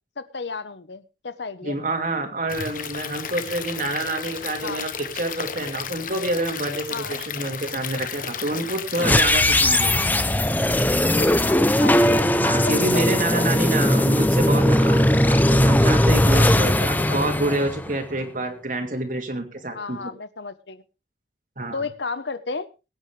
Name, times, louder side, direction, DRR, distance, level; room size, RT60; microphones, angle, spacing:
voice 1, 0.2-1.8 4.6-4.9 6.9-7.1 11.1-12.3 12.6-13.1 13.3-13.5 16.3-17.2 17.5-17.6 19.7-20.8 21.7-22.7, left 4 dB, 75° left, 13 dB, 1.1 m, -33 dB
voice 2, 1.6-9.9 12.4-20.0 21.6-21.8, right 2 dB, 45° right, 5 dB, 2.6 m, -27 dB
Stream / Liquid, 2.5-9.5, left 7 dB, 50° left, 1.2 m, -33 dB
sound 1, 9.0-18.2, left 1 dB, 10° left, 0.7 m, -19 dB
22.0 x 9.4 x 3.4 m, 0.30 s
head